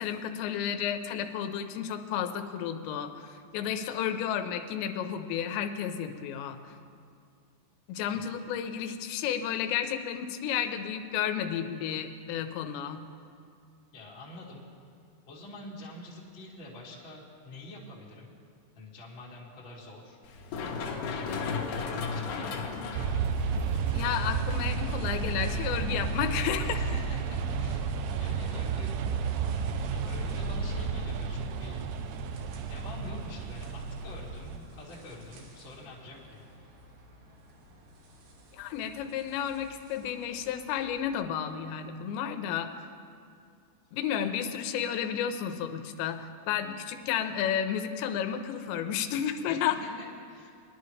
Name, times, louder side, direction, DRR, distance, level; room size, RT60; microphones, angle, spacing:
voice 1, 0.0-6.7 7.9-13.1 23.9-26.9 38.5-42.7 43.9-49.8, left 9 dB, 90° left, 7 dB, 3.0 m, -32 dB
voice 2, 13.9-14.6 15.3-18.3 18.7-20.2 22.1-22.9 26.7-28.9 29.9-32.1 32.7-36.4 44.1-44.3 49.5-50.5, left 2 dB, 35° left, -6 dB, 0.9 m, -46 dB
Run, 20.2-27.8, left 4 dB, 70° left, 2.1 m, -37 dB
sound 1, 22.9-34.6, right 5 dB, 85° right, 2.8 m, -32 dB
sound 2, 23.5-41.2, right 2 dB, 70° right, 3.3 m, -52 dB
21.5 x 11.5 x 3.2 m, 2.3 s
omnidirectional pair, 5.0 m